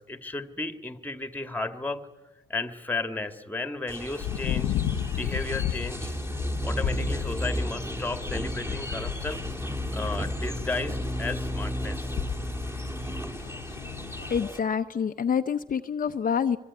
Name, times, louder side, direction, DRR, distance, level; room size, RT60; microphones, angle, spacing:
voice 1, 0.0-2.0 2.5-4.7 5.1-6.2 6.6-9.4 9.9-12.2, left 2 dB, 10° left, 8 dB, 2.0 m, -34 dB
sound 1, 3.9-14.6, equal, 10° right, 3.0 m, -33 dB
sound 2, 4.2-14.4, left 11 dB, 90° left, 1.0 m, -34 dB
voice 2, 14.2-16.6, left 7 dB, 45° left, 7 dB, 0.9 m, -27 dB
24.5 x 23.5 x 9.7 m, 1.2 s
cardioid pair, 90°, 20 cm